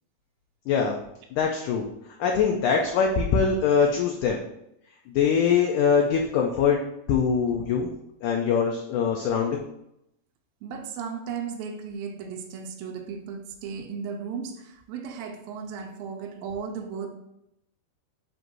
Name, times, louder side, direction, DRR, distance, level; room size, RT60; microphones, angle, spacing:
voice 1, 0.7-1.0 1.3-1.9 2.2-4.4 5.1-6.8 7.1-7.9 8.2-9.6, left 6 dB, 90° left, 1 dB, 1.7 m, -23 dB
voice 2, 10.6-17.1, right 6 dB, 80° right, 2 dB, 2.5 m, -35 dB
7.9 x 2.7 x 6.0 m, 0.81 s
omnidirectional pair, 4.4 m